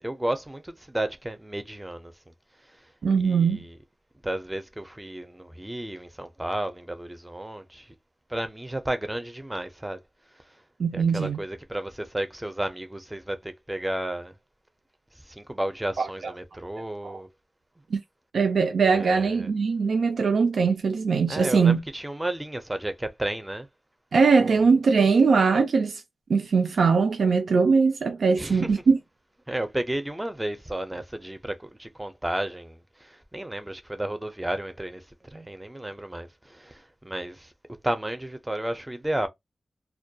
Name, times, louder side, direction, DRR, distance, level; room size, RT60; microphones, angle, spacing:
voice 1, 0.0-2.1 3.2-3.8 4.2-8.0 8.3-10.0 10.9-14.3 15.2-17.3 18.9-19.5 21.3-23.7 24.5-24.6 28.4-28.7 29.5-35.0 35.3-37.5 37.8-39.3, right 1 dB, 10° right, 0.4 m, -32 dB
voice 2, 3.0-3.7 10.8-11.4 16.0-16.1 17.0-17.1 17.9-18.0 18.3-21.8 24.1-26.0 26.3-29.0, right 5 dB, 85° right, 0.3 m, -21 dB
2.2 x 2.2 x 2.6 m
wide cardioid pair, 115°, 0 cm